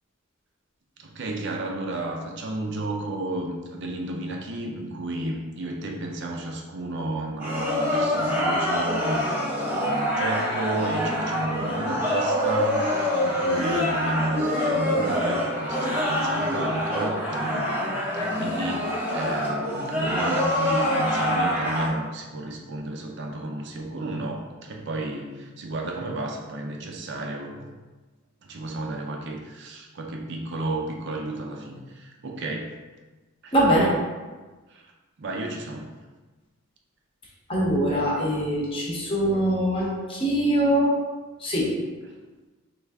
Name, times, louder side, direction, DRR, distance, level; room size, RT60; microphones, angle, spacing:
voice 1, 1.0-27.7 28.5-32.7 33.4-33.5 34.7-34.8 35.2-35.9, right 2 dB, 55° right, 1 dB, 0.5 m, -32 dB
sound 1, 7.4-21.9, left 1 dB, 10° right, 0.7 m, -25 dB
voice 2, 33.5-33.9 37.5-40.9 41.4-41.7, equal, 25° left, -4 dB, 0.8 m, -22 dB
3.3 x 2.5 x 3.5 m, 1.3 s
head